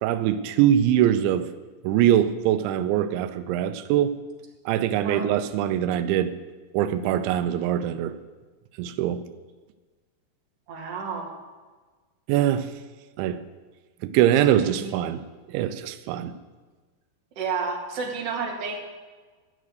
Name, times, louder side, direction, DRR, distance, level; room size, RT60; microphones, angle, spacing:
voice 1, 0.0-1.5 1.8-4.1 4.7-6.4 6.7-8.2 8.8-9.2 12.3-12.7 13.2-13.4 14.0-15.2 15.5-16.4, right 11 dB, 90° right, 11 dB, 3.0 m, -23 dB
voice 2, 10.7-11.3 14.5-14.9 17.4-18.8, right 5 dB, 45° right, -1 dB, 2.5 m, -31 dB
13.5 x 6.5 x 9.2 m, 1.3 s
omnidirectional pair, 5.2 m